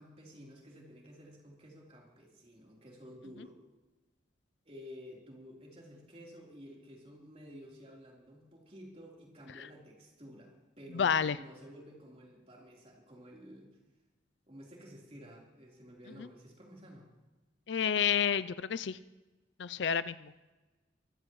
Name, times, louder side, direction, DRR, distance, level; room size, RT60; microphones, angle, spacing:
voice 1, 0.0-3.6 4.7-13.8 14.5-17.1, equal, 35° right, -2 dB, 3.8 m, -52 dB
voice 2, 10.9-11.4 16.2-16.3 17.7-19.0 19.6-20.3, left 7 dB, 70° left, 15 dB, 0.5 m, -30 dB
24.0 x 15.0 x 3.2 m, 1.1 s
head